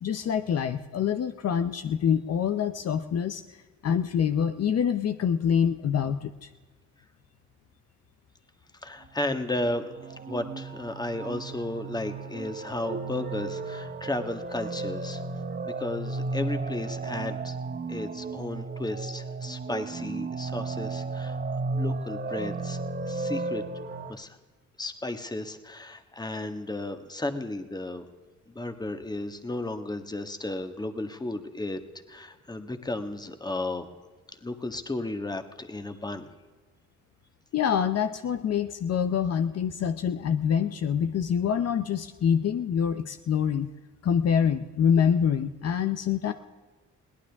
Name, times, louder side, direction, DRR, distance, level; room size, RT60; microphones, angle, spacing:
voice 1, 0.0-3.4 3.8-6.5 37.5-43.7 44.0-46.3, left 8 dB, 55° left, 9 dB, 0.8 m, -26 dB
voice 2, 8.8-9.9 10.3-15.2 15.6-17.6 17.9-21.4 21.7-22.8 23.1-23.6 24.1-24.4 24.8-28.0 28.5-31.8 32.1-33.9 34.4-36.3, left 2 dB, 15° left, 8 dB, 1.6 m, -34 dB
sound 1, 9.4-24.1, right 3 dB, 30° right, 1.1 m, -34 dB
22.0 x 17.5 x 3.6 m, 1.3 s
cardioid pair, 90°, 30 cm